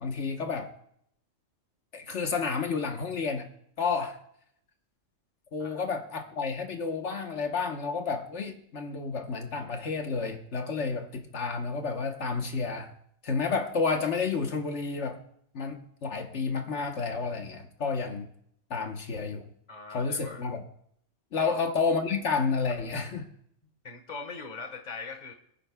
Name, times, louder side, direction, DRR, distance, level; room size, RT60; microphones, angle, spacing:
voice 1, 0.0-0.7 1.9-3.5 3.8-4.2 5.5-12.9 13.2-15.2 15.5-18.3 18.7-19.5 19.9-20.6 21.3-23.3, left 4 dB, 75° left, 4 dB, 1.4 m, -30 dB
voice 2, 19.7-20.4 21.3-21.5 23.8-25.3, left 4 dB, 35° left, 4 dB, 1.4 m, -41 dB
24.0 x 9.8 x 2.3 m, 0.69 s
omnidirectional pair, 1.2 m